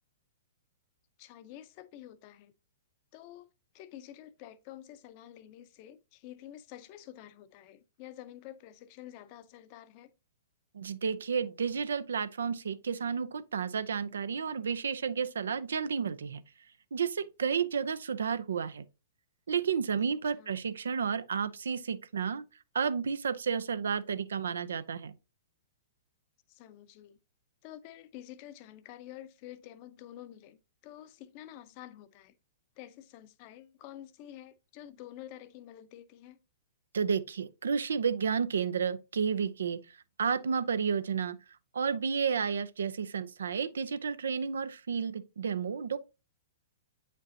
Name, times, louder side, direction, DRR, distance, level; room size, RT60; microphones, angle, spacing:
voice 1, 1.2-2.5 3.1-3.5 3.7-10.1 19.9-20.6 26.5-27.2 27.6-32.3 32.8-36.4, left 12 dB, 40° left, 0.7 m, -49 dB
voice 2, 10.7-16.4 16.9-18.8 19.5-22.4 22.7-25.1 36.9-41.4 41.7-46.0, right 6 dB, 65° right, 0.5 m, -31 dB
8.4 x 5.2 x 2.8 m
figure-of-eight pair, 110°, 0 cm